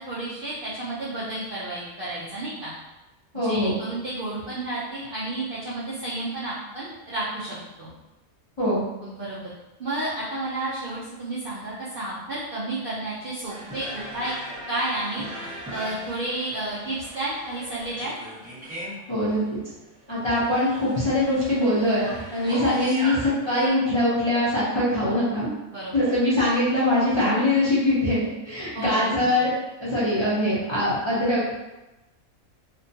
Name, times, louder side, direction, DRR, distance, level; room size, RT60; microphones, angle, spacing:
voice 1, 0.1-2.7 3.3-7.9 9.0-9.4 9.8-14.3 14.7-18.2 22.4-22.6 25.7-26.1 28.7-29.3, right 2 dB, 65° right, -8 dB, 0.5 m, -31 dB
voice 2, 3.3-3.7 8.6-8.8 19.1-19.4 20.1-25.5 25.9-29.5 29.8-31.5, left 1 dB, 45° left, -10 dB, 0.3 m, -23 dB
sound 1, 13.5-23.7, equal, 10° right, 0.7 m, -38 dB
2.4 x 2.2 x 2.6 m, 1.0 s
omnidirectional pair, 1.5 m